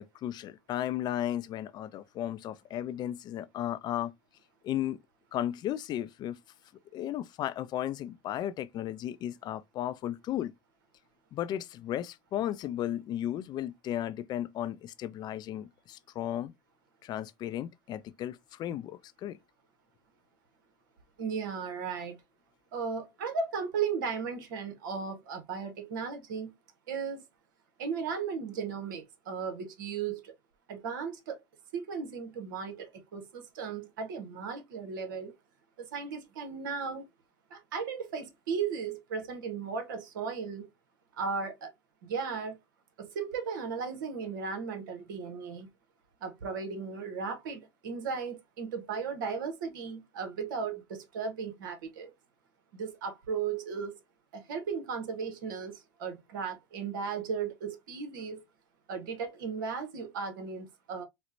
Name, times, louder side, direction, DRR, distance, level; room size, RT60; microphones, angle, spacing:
voice 1, 0.0-4.1 4.6-5.0 5.3-6.4 6.9-10.5 11.3-16.5 17.0-19.4, left 12 dB, 40° left, 0.4 m, -35 dB
voice 2, 21.2-22.2 22.7-26.5 26.9-27.2 27.8-30.3 30.7-31.4 31.7-35.4 35.8-37.1 37.5-40.7 41.2-41.7 42.0-42.6 43.0-45.7 46.2-52.1 52.7-53.9 54.3-58.4 58.9-61.0, right 5 dB, 70° right, 0.9 m, -36 dB
4.2 x 2.1 x 2.5 m
hypercardioid pair, 80°, 11 cm